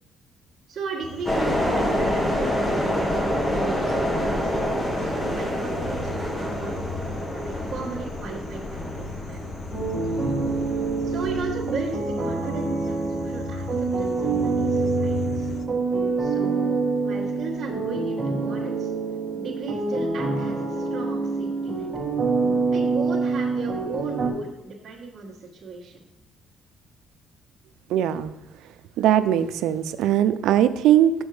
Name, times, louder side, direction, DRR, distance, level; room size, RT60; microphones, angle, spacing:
voice 1, 0.7-4.5 5.0-6.8 7.3-9.4 11.0-15.5 16.2-18.9 19.3-21.9 22.7-26.0, right 4 dB, 40° right, -7 dB, 1.4 m, -36 dB
sound 1, 1.0-15.7, left 5 dB, 60° left, 0.5 m, -37 dB
sound 2, 1.3-11.4, equal, 10° left, 1.2 m, -27 dB
sound 3, 9.7-24.3, right 4 dB, 20° right, 1.5 m, -26 dB
voice 2, 27.9-28.3 29.0-31.1, right 11 dB, 85° right, 12 dB, 0.4 m, -20 dB
6.3 x 5.9 x 4.8 m, 0.90 s
cardioid pair, 125°, 0 cm